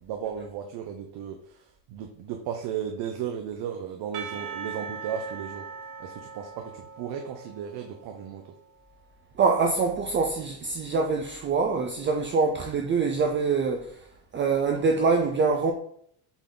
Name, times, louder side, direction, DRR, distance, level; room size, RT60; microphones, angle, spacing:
voice 1, 0.0-1.6 1.9-5.6 6.0-8.4, right 8 dB, 55° right, 0.9 m, -35 dB
Percussion / Church bell, 4.1-8.7, right 5 dB, 75° right, 1.2 m, -40 dB
voice 2, 9.4-14.0 14.3-15.7, right 4 dB, 25° right, 0.5 m, -24 dB
8.1 x 4.0 x 3.9 m
cardioid pair, 150°, 48 cm